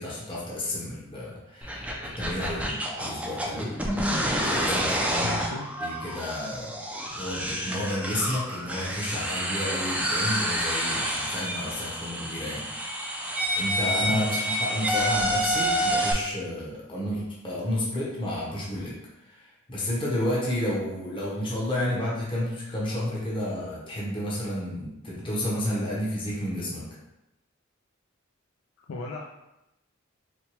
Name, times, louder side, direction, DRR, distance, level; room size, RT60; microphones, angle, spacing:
voice 1, 0.0-3.7 4.4-5.5 5.8-6.8 7.1-12.6 13.3-18.9 19.2-26.8, left 1 dB, 25° left, -5 dB, 0.8 m, -31 dB
sound 1, 1.6-16.1, equal, 5° right, 0.4 m, -28 dB
voice 2, 5.2-5.7 14.1-14.6 28.9-29.2, left 3 dB, 70° left, -1 dB, 0.4 m, -34 dB
4.2 x 2.2 x 3.0 m, 0.90 s
head